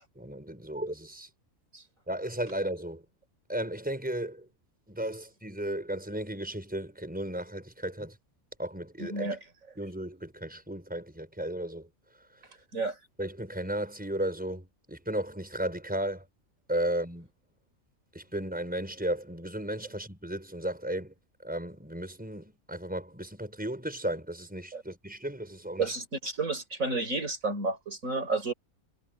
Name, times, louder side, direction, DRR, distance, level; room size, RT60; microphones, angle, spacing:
voice 1, 0.2-1.3 2.1-3.0 3.5-4.5 4.9-8.2 8.6-9.4 9.8-11.9 12.2-12.5 13.2-16.3 16.7-17.3 18.1-25.9, right 1 dB, 5° right, 5.5 m, -35 dB
voice 2, 9.0-9.4 12.7-13.0 24.7-24.8 25.8-28.5, right 3 dB, 80° right, 4.5 m, -31 dB
omnidirectional pair, 1.4 m